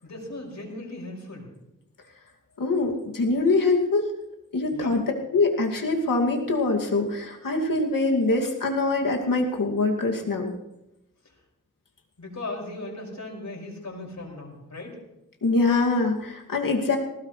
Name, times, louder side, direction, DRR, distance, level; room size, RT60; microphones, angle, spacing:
voice 1, 0.0-1.5 4.7-4.9 12.2-15.0, left 2 dB, 60° left, -1 dB, 5.9 m, -37 dB
voice 2, 2.6-4.1 4.5-5.0 5.3-10.5 15.4-17.0, left 3 dB, 80° left, 1 dB, 2.5 m, -24 dB
20.0 x 17.5 x 3.3 m, 0.90 s
cardioid pair, 55°, 33 cm